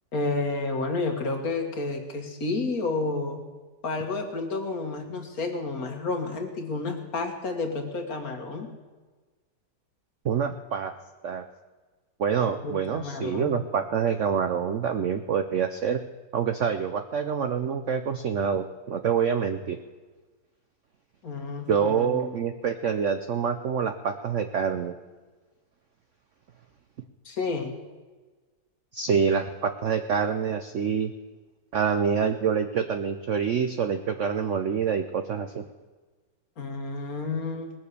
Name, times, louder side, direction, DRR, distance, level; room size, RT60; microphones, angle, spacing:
voice 1, 0.1-3.4 3.8-8.7 12.6-13.6 21.2-22.3 27.3-27.8 36.6-37.7, left 3 dB, 50° left, 4 dB, 2.0 m, -30 dB
voice 2, 10.2-10.9 11.2-11.4 12.2-16.0 16.3-19.8 21.7-24.9 28.9-31.1 31.7-35.6, right 7 dB, 65° right, 8 dB, 0.7 m, -26 dB
19.5 x 7.2 x 6.7 m, 1.3 s
omnidirectional pair, 2.0 m